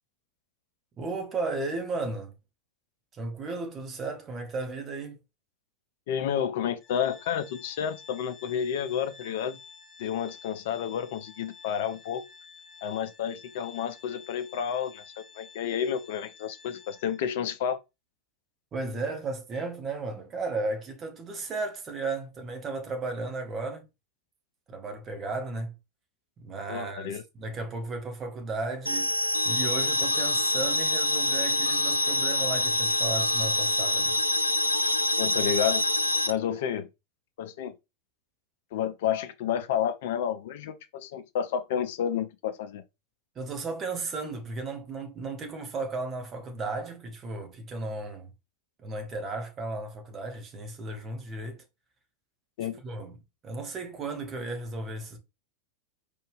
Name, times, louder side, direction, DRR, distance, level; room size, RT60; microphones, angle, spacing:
voice 1, 1.0-2.4 3.1-5.2 18.7-23.9 24.7-25.7 26.4-29.1 29.4-34.2 43.3-48.3 48.8-51.6 52.8-53.2 53.4-55.2, right 3 dB, 25° right, 1.2 m, -34 dB
voice 2, 6.1-9.6 10.0-12.3 12.8-15.0 15.4-17.8 26.7-27.2 35.2-35.8 36.3-36.9 37.4-37.7 38.7-42.8 52.6-52.8, left 9 dB, 55° left, 0.7 m, -30 dB
Organ, 6.8-17.4, left 6 dB, 25° left, 2.6 m, -51 dB
sound 1, 28.9-36.3, left 1 dB, 90° left, 0.4 m, -26 dB
4.5 x 3.5 x 3.4 m
figure-of-eight pair, 90°, 0 cm